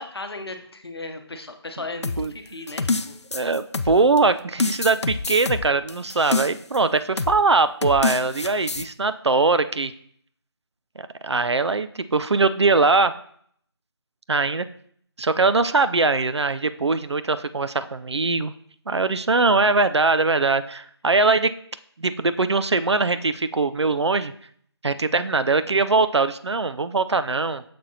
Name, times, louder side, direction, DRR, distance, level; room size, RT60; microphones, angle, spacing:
voice 1, 0.0-3.2, left 2 dB, 65° left, 6 dB, 0.9 m, -36 dB
sound 1, 2.0-4.2 4.6-6.8 7.2-7.4 7.8-8.8, left 3 dB, 85° left, 0.4 m, -27 dB
voice 2, 3.3-9.9 11.2-13.1 14.3-14.7 15.2-18.5 18.9-21.5 22.0-24.3 24.8-27.6, right 3 dB, 80° right, 12 dB, 0.4 m, -21 dB
6.6 x 5.9 x 2.8 m, 0.64 s
figure-of-eight pair, 160°, 14 cm